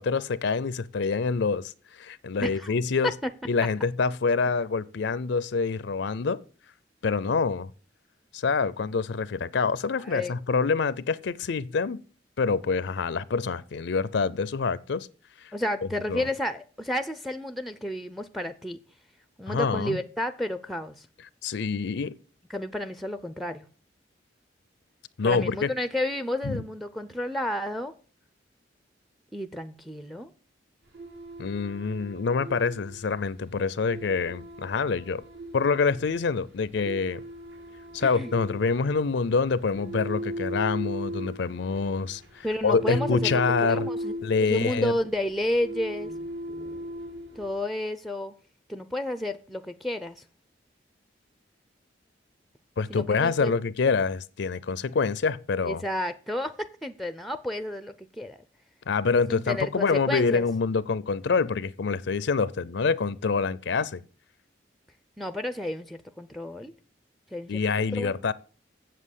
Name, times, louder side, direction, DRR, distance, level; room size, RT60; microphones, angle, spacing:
voice 1, 0.0-3.1 3.5-6.4 7.0-7.7 8.3-12.0 12.4-15.1 15.4-15.5 16.1-16.3 19.5-20.0 21.4-22.2 25.2-25.7 26.4-26.6 31.4-35.2 35.5-37.2 37.9-43.9 44.2-45.0 52.8-55.8 58.9-64.0 67.5-68.3, left 4 dB, 65° left, 0.5 m, -26 dB
voice 2, 2.4-2.7 3.0-3.3 10.0-10.4 15.5-18.8 19.4-21.1 22.5-23.7 25.2-27.9 29.3-30.3 38.0-38.3 42.4-44.2 44.4-46.1 47.4-48.3 48.7-50.2 52.9-53.5 55.7-58.4 59.3-60.4 65.2-66.7 67.3-68.2, left 1 dB, ahead, 0.5 m, -31 dB
sound 1, 30.9-47.5, equal, 75° right, 4.9 m, -38 dB
7.6 x 7.6 x 8.3 m
head